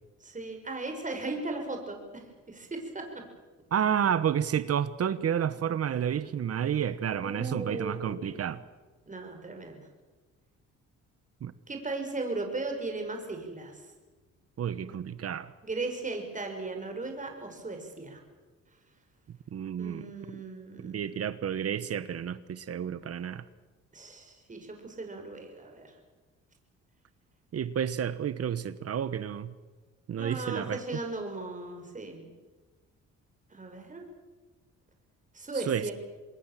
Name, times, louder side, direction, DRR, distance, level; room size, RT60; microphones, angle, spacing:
voice 1, 0.2-3.2 7.2-8.3 9.1-9.8 11.7-13.9 14.8-14.9 15.6-18.2 19.8-21.1 23.9-25.9 30.2-32.3 33.5-34.0 35.3-35.9, right 3 dB, 25° right, 4 dB, 6.0 m, -37 dB
voice 2, 3.7-8.6 11.4-11.5 14.6-15.5 19.5-20.4 20.8-23.4 27.5-29.5 30.1-30.8 35.7-35.9, right 8 dB, 55° right, 15 dB, 1.1 m, -30 dB
26.0 x 21.0 x 7.6 m, 1.3 s
cardioid pair, 90°, 30 cm